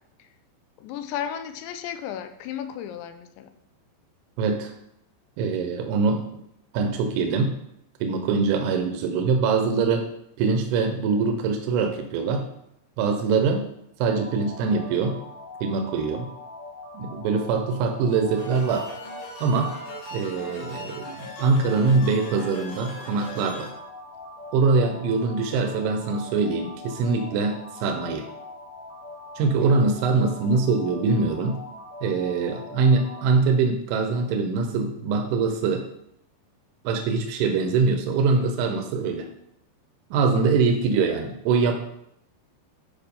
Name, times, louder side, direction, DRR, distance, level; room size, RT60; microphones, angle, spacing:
voice 1, 0.8-3.5 30.2-30.6, left 9 dB, 80° left, 9 dB, 3.0 m, -34 dB
voice 2, 4.4-4.7 5.4-6.3 6.7-7.5 8.0-10.1 10.4-12.5 13.0-13.7 14.0-15.2 15.6-16.3 16.9-18.9 19.4-19.7 20.1-23.7 24.5-28.3 29.4-31.6 32.0-35.9 36.8-39.3 40.1-41.7, right 4 dB, 85° right, 4 dB, 3.3 m, -23 dB
sound 1, 14.0-33.3, left 2 dB, 60° left, 1.4 m, -42 dB
sound 2, 18.4-23.7, equal, 40° left, 3.1 m, -40 dB
10.5 x 5.1 x 5.4 m, 0.76 s
omnidirectional pair, 5.3 m